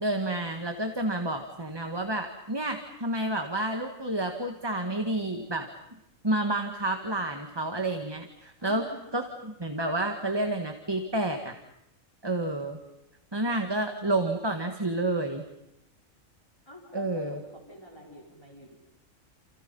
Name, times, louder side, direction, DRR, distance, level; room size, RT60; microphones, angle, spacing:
voice 1, 0.0-5.7 6.2-8.8 9.1-11.5 12.2-12.8 13.3-15.4 16.9-17.4, right 1 dB, 20° right, 5 dB, 1.7 m, -30 dB
voice 2, 8.6-9.0 16.7-18.7, equal, 20° left, -1 dB, 4.5 m, -46 dB
30.0 x 29.5 x 5.5 m, 0.85 s
omnidirectional pair, 1.4 m